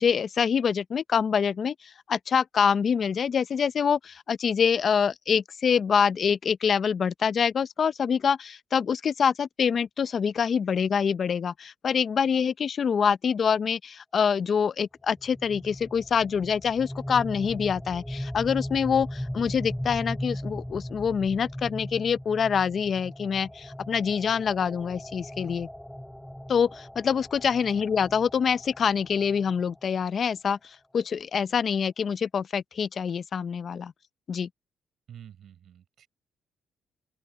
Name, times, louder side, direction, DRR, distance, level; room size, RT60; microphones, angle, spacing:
voice 1, 0.0-25.7 26.5-33.9 34.3-34.5, left 7 dB, 50° left, 0.7 m, -25 dB
sound 1, 15.2-30.0, equal, 5° left, 3.6 m, -38 dB
voice 2, 35.1-36.1, right 9 dB, 65° right, 5.6 m, -49 dB
open air
cardioid pair, 90°, 0 cm